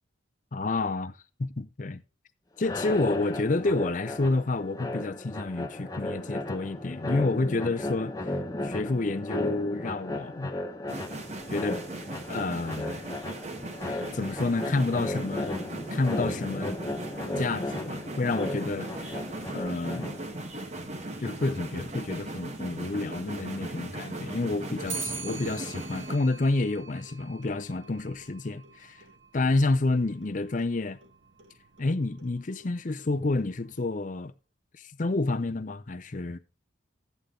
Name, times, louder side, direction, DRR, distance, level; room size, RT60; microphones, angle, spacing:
voice 1, 0.5-1.1 1.4-2.0 2.6-8.3 8.6-10.5 11.5-11.8 12.3-13.0 13.8-15.6 15.9-16.8 17.4-19.2 19.5-20.2 21.2-29.0 29.3-31.0 31.8-34.3 34.8-36.4, left 2 dB, 40° left, 0.6 m, -29 dB
sound 1, 2.6-20.4, left 1 dB, 20° left, 1.0 m, -35 dB
sound 2, 10.9-26.2, right 1 dB, 35° right, 1.3 m, -38 dB
Clock, 24.9-34.2, right 4 dB, 75° right, 1.6 m, -44 dB
13.5 x 8.2 x 3.8 m
head